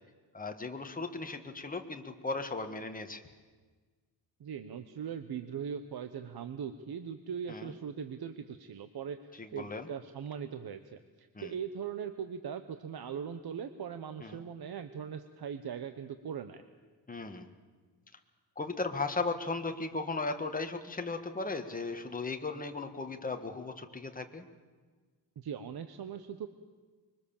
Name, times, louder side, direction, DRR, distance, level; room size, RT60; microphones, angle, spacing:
voice 1, 0.3-3.2 7.5-7.8 9.3-9.9 11.3-11.5 14.2-14.4 17.1-17.5 18.6-24.4, left 3 dB, 20° left, 5 dB, 1.6 m, -36 dB
voice 2, 4.4-9.2 9.5-11.0 11.4-16.6 25.4-26.5, right 7 dB, 60° right, 9 dB, 1.0 m, -40 dB
25.0 x 22.5 x 7.2 m, 1.4 s
wide cardioid pair, 145°, 42 cm